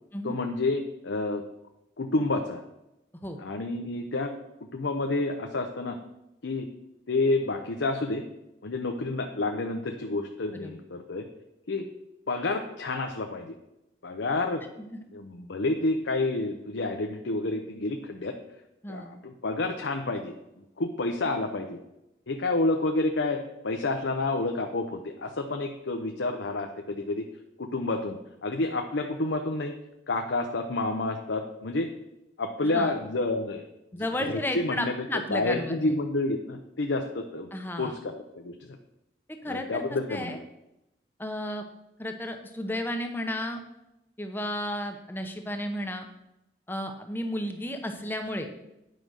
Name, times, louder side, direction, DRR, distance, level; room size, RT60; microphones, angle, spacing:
voice 1, 0.2-1.4 2.0-2.6 3.4-4.3 4.6-6.0 6.4-6.7 7.1-8.2 8.6-11.3 11.7-11.9 12.3-13.5 14.0-14.7 15.1-18.3 18.9-20.3 20.8-21.8 22.3-27.2 27.6-29.7 30.1-31.9 32.4-33.7 33.9-34.9 35.3-37.5 37.8-38.8 39.5-40.4, left 2 dB, 85° left, 3 dB, 0.7 m, -29 dB
voice 2, 33.9-35.9 37.5-37.9 39.3-39.8 40.1-40.4 41.2-41.6 42.0-43.6 44.2-46.1 46.7-48.5, left 1 dB, 10° left, 5 dB, 0.7 m, -33 dB
9.5 x 5.2 x 6.3 m, 0.89 s
head